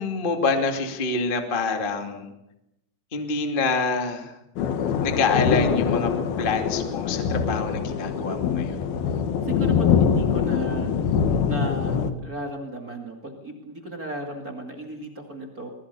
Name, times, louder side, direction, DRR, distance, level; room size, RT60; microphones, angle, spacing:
voice 1, 0.0-2.3 3.1-4.3 5.0-6.1 6.4-8.8, left 4 dB, 80° left, 5 dB, 0.4 m, -26 dB
sound 1, 4.6-12.1, left 7 dB, 60° left, 2.8 m, -24 dB
voice 2, 9.4-10.9 11.5-15.7, right 1 dB, 50° right, 2 dB, 1.0 m, -35 dB
24.5 x 21.0 x 6.9 m, 0.85 s
omnidirectional pair, 5.9 m